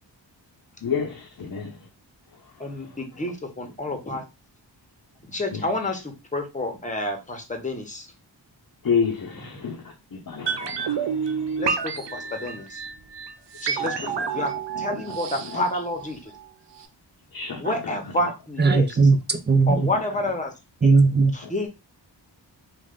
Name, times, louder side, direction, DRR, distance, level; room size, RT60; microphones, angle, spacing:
voice 1, 0.8-1.8 2.6-2.7 5.5-5.7 8.8-11.6 13.7-14.5 14.7-15.1 15.5-15.6 17.3-18.0 19.7-20.0 21.4-21.5, left 6 dB, 45° left, 0 dB, 0.8 m, -30 dB
voice 2, 2.6-4.2 5.2-8.1 11.6-12.8 13.6-14.5 14.8-16.3 17.5-18.9 19.7-20.5 20.8-21.0 21.3-21.7, left 1 dB, 15° left, 3 dB, 1.0 m, -29 dB
sound 1, 10.5-16.5 16.8-16.9, right 6 dB, 65° right, 0.6 m, -29 dB
voice 3, 18.6-19.8 20.8-21.3, right 4 dB, 25° right, 9 dB, 0.6 m, -18 dB
3.2 x 2.4 x 3.7 m, 0.26 s
wide cardioid pair, 65°, 45 cm